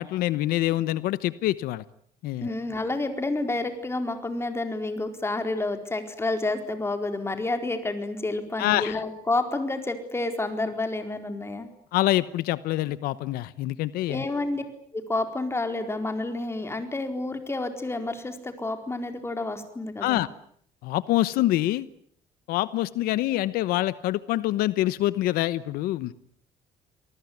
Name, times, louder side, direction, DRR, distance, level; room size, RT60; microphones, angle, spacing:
voice 1, 0.0-1.8 2.2-2.5 8.6-9.0 11.9-14.3 20.0-20.3 20.8-21.9 22.5-26.1, left 15 dB, 85° left, 16 dB, 1.0 m, -25 dB
voice 2, 2.4-11.7 14.1-14.6 14.9-20.3, left 2 dB, 15° left, 7 dB, 4.4 m, -29 dB
26.5 x 19.5 x 9.5 m, 0.63 s
cardioid pair, 115°, 15 cm